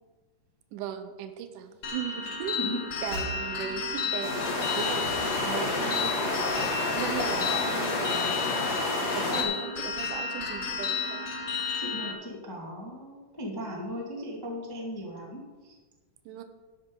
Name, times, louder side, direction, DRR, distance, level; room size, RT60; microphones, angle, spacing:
voice 1, 0.7-2.6 3.0-6.6 6.9-8.4 9.0-11.3 16.3-16.4, right 9 dB, 80° right, 8 dB, 2.3 m, -38 dB
Train / Slam, 1.6-5.3 5.5-5.8 6.1-7.3 7.7-8.1, right 2 dB, 40° right, 3.6 m, -44 dB
sound 1, 1.8-12.1, left 5 dB, 50° left, 1.4 m, -33 dB
sound 2, 4.2-9.4, left 3 dB, 90° left, 4.1 m, -29 dB
voice 2, 11.8-15.7, equal, 10° left, -2 dB, 1.1 m, -37 dB
12.0 x 11.0 x 3.8 m, 1.3 s
omnidirectional pair, 3.7 m